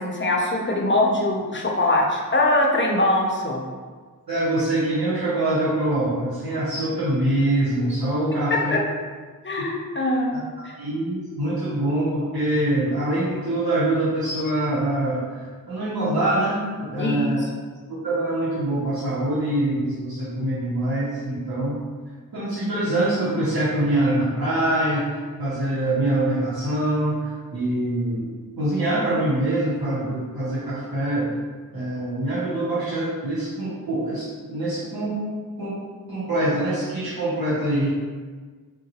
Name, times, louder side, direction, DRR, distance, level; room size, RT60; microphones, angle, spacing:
voice 1, 0.0-3.6 8.7-8.8 9.4-10.3 10.6-10.8 17.0-17.2, left 1 dB, 35° left, -1 dB, 0.6 m, -22 dB
voice 2, 4.3-8.7 10.3-10.4 10.8-17.4 17.9-21.8 22.3-31.3 31.7-35.2 35.6-35.7 36.1-37.9, right 1 dB, 85° right, -11 dB, 0.9 m, -24 dB
3.7 x 2.2 x 2.8 m, 1.5 s
wide cardioid pair, 60°, 35 cm